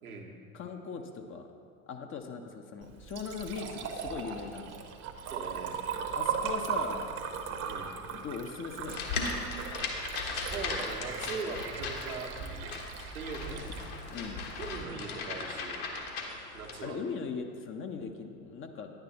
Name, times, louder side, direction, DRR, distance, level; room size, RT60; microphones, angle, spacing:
voice 1, 0.0-0.3 5.3-5.8 7.6-7.9 10.2-12.8 13.1-13.7 14.6-15.9 16.5-17.0, right 4 dB, 80° right, 0 dB, 1.3 m, -40 dB
voice 2, 0.5-1.5 1.9-4.8 6.1-7.1 8.1-9.1 13.5-14.4 16.8-18.9, left 5 dB, 30° left, 5 dB, 0.8 m, -40 dB
Liquid, 2.8-14.8, right 7 dB, 35° right, 1.0 m, -38 dB
sound 1, 8.9-16.8, left 4 dB, 55° left, 1.5 m, -37 dB
10.5 x 9.0 x 4.1 m, 2.4 s
figure-of-eight pair, 75°, 43 cm